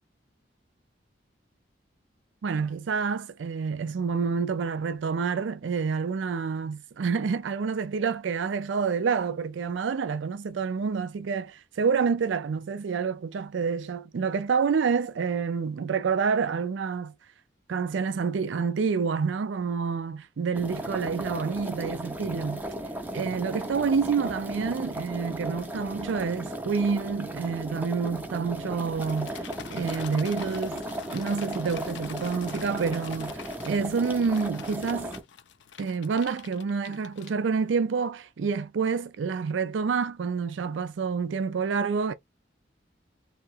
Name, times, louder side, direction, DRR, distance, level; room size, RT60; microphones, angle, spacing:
voice 1, 2.4-17.1 17.7-22.6 23.1-29.4 29.7-30.8 31.1-35.1 35.8-42.1, right 5 dB, 85° right, 0.4 m, -28 dB
sound 1, 20.5-35.2, right 1 dB, 10° right, 0.5 m, -36 dB
sound 2, 29.0-37.7, left 8 dB, 75° left, 0.4 m, -46 dB
2.8 x 2.4 x 2.5 m
head